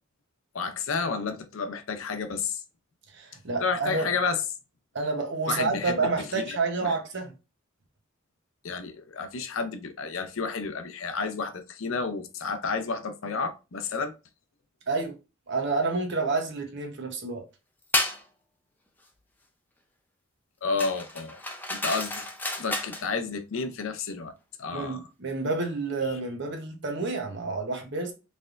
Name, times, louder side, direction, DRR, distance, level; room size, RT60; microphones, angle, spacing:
voice 1, 0.5-2.6 3.6-4.4 5.5-6.9 8.6-14.1 20.6-21.4 21.7-22.1 22.6-24.3 24.6-25.0, left 4 dB, 75° left, 0.6 m, -31 dB
voice 2, 3.1-4.1 4.9-7.3 14.9-15.1 15.5-17.4 24.7-28.1, right 3 dB, 60° right, 1.0 m, -29 dB
sound 1, 17.9-18.2 20.8-23.1, left 2 dB, 10° left, 0.6 m, -30 dB
4.2 x 3.4 x 2.5 m
head